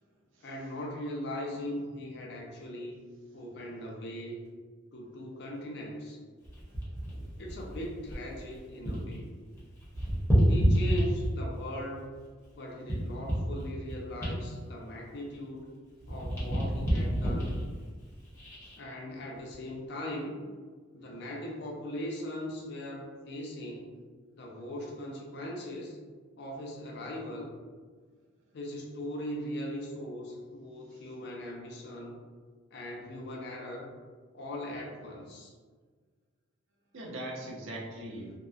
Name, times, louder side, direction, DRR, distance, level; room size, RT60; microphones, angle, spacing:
voice 1, 0.4-3.0 3.3-4.4 4.9-6.2 7.4-9.2 10.5-12.1 12.6-15.7 16.1-17.5 18.8-20.4 20.9-23.9 24.3-26.0 26.4-27.5 28.5-32.2 32.7-33.9 34.3-35.5, left 1 dB, 55° left, -1 dB, 0.4 m, -39 dB
sound 1, 6.4-9.2 9.5-11.6 12.1-15.7 16.0-18.8 19.3-19.5, equal, 15° left, 0.7 m, -30 dB
voice 2, 6.7-7.2 36.9-38.3, right 1 dB, 70° right, -1 dB, 0.5 m, -41 dB
2.7 x 2.0 x 2.3 m, 1.5 s
head